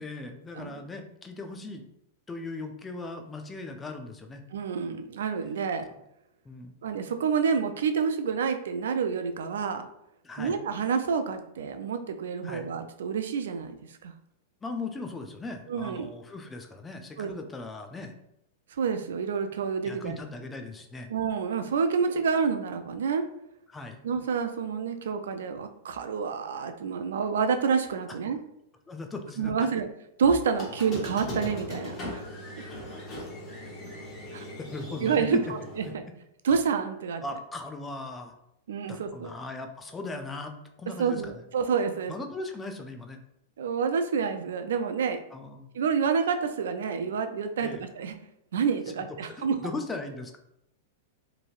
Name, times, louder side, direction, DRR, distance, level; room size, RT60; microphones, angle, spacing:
voice 1, 0.0-1.8 2.3-4.4 6.4-6.7 10.2-10.6 12.4-12.7 14.6-18.1 19.8-21.1 23.7-24.0 28.9-29.7 31.5-31.6 34.7-35.4 35.8-36.0 37.2-38.4 38.9-41.5 42.1-43.2 45.3-45.7 47.6-47.8 49.1-50.4, left 3 dB, 15° left, 5 dB, 0.4 m, -38 dB
voice 2, 4.5-5.8 6.8-9.8 10.4-13.8 14.0-14.1 15.7-16.1 17.2-17.3 18.8-20.2 21.1-23.2 24.0-28.4 29.4-29.9 30.2-32.2 34.3-34.5 35.0-36.0 36.4-37.2 38.7-39.3 41.0-42.1 43.6-45.2 45.7-48.1 48.5-49.6, right 6 dB, 80° right, 7 dB, 0.3 m, -28 dB
Squeak, 30.5-35.9, left 1 dB, 35° left, 1.1 m, -39 dB
3.0 x 2.6 x 2.4 m, 0.79 s
hypercardioid pair, 120°, 0 cm